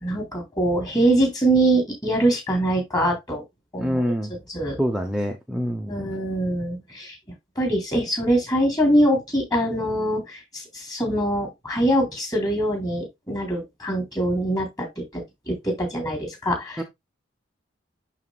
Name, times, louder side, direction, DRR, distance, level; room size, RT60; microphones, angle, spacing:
voice 1, 0.0-3.4 3.7-4.1 4.5-4.8 5.9-7.2 7.6-16.8, right 1 dB, 20° left, 3.7 m, -23 dB
voice 2, 3.8-4.3 4.8-6.0 16.8-16.9, equal, 5° right, 0.8 m, -26 dB
11.5 x 4.2 x 2.3 m
head